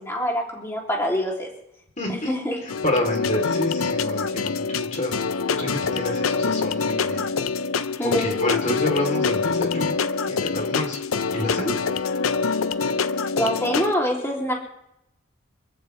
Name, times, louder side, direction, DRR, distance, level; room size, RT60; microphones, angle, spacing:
voice 1, 0.0-1.5 2.1-2.6 8.0-8.4 13.4-14.5, equal, 15° left, -2 dB, 3.0 m, -25 dB
voice 2, 2.0-2.5 2.8-5.2 5.5-7.3 8.2-11.0 11.3-11.7, left 1 dB, 35° left, 2 dB, 3.5 m, -28 dB
sound 1, 2.7-13.9, left 5 dB, 80° left, 0.6 m, -25 dB
25.5 x 14.5 x 3.4 m, 0.80 s
head